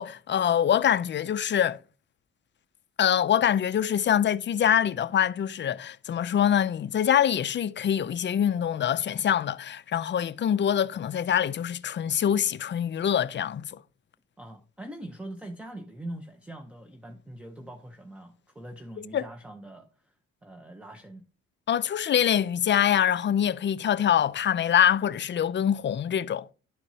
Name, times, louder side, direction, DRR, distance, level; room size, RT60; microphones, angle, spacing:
voice 1, 0.0-1.8 3.0-13.8 19.0-19.2 21.7-26.5, left 9 dB, 40° left, 0.4 m, -24 dB
voice 2, 14.4-20.1 20.4-21.2, right 1 dB, 5° right, 0.8 m, -42 dB
11.5 x 4.3 x 2.8 m
cardioid pair, 90°, 30 cm